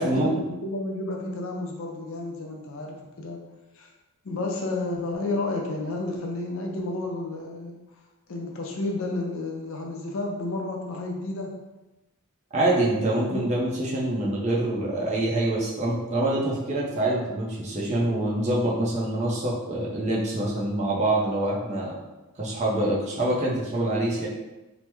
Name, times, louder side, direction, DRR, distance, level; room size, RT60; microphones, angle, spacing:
voice 1, 0.0-3.4 3.7-3.9 4.2-7.7 8.3-11.5 13.3-13.4, left 2 dB, 60° left, 0 dB, 0.5 m, -31 dB
voice 2, 12.5-22.0 22.4-24.3, right 1 dB, 30° right, -4 dB, 0.6 m, -25 dB
2.9 x 2.0 x 3.3 m, 1.0 s
head